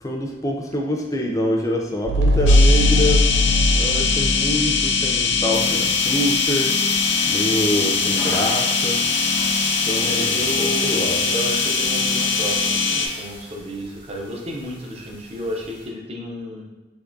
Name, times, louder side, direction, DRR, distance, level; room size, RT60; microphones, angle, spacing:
voice 1, 0.0-3.2 3.7-6.7 7.3-9.0 9.3-9.5 9.9-11.2, left 1 dB, 20° left, 0 dB, 0.4 m, -26 dB
sound 1, 2.1-5.4, left 1 dB, 85° right, 0.3 m, -19 dB
sound 2, 2.5-13.1, left 5 dB, 80° left, 0.5 m, -21 dB
sound 3, 5.5-15.9, right 1 dB, 65° right, 1.2 m, -33 dB
voice 2, 9.9-16.6, equal, 35° right, -1 dB, 0.5 m, -32 dB
3.5 x 2.9 x 2.6 m, 1.2 s
head